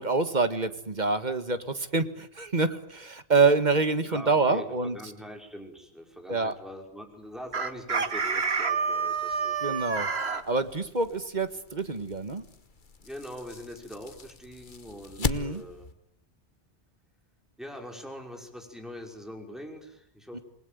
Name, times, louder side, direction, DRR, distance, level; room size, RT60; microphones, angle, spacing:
voice 1, 0.0-5.0 6.3-6.5 9.6-10.1 10.5-12.4 15.2-15.6 20.3-20.4, right 4 dB, 45° right, 11 dB, 1.8 m, -26 dB
voice 2, 4.0-9.8 13.0-15.9 17.6-20.4, equal, ahead, 3 dB, 5.6 m, -43 dB
Chicken rooster, 7.5-10.4, right 5 dB, 70° right, 1.9 m, -28 dB
sound 1, 10.3-15.9, left 4 dB, 50° left, 1.4 m, -39 dB
28.0 x 21.0 x 9.5 m, 0.70 s
omnidirectional pair, 1.1 m